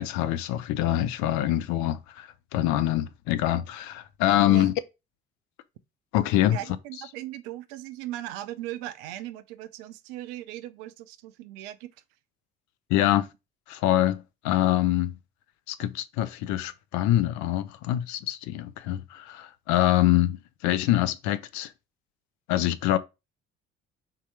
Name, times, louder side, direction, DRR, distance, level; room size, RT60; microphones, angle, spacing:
voice 1, 0.0-4.7 6.1-6.6 12.9-13.3 13.7-15.2 15.7-21.7 22.5-23.0, left 13 dB, 55° left, 0.6 m, -25 dB
voice 2, 6.5-11.9 13.0-13.3, right 13 dB, 60° right, 0.6 m, -38 dB
3.8 x 2.8 x 4.5 m
figure-of-eight pair, 50°, 35 cm